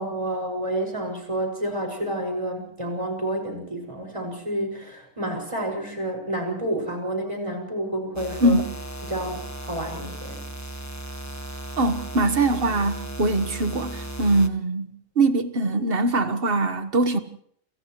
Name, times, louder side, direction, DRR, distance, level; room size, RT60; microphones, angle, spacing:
voice 1, 0.0-8.6 9.1-10.5, right 1 dB, 25° right, 6.4 m, -29 dB
sound 1, 8.2-14.5, right 1 dB, 15° left, 1.4 m, -36 dB
voice 2, 11.8-17.2, right 2 dB, 50° right, 1.6 m, -22 dB
29.0 x 28.0 x 3.2 m
omnidirectional pair, 1.3 m